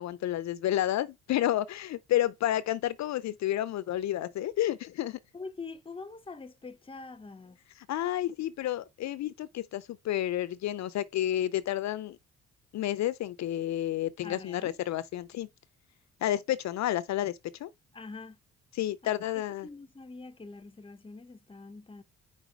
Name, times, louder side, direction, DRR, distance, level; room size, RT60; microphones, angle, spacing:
voice 1, 0.0-5.2 7.9-12.2 12.7-15.5 16.2-17.7 18.7-19.7, left 13 dB, 65° left, 0.5 m, -30 dB
voice 2, 5.3-7.6 14.2-14.8 17.9-18.4 19.0-19.1 19.6-22.0, left 3 dB, 20° left, 0.7 m, -44 dB
5.1 x 4.0 x 4.9 m
cardioid pair, 90°, 30 cm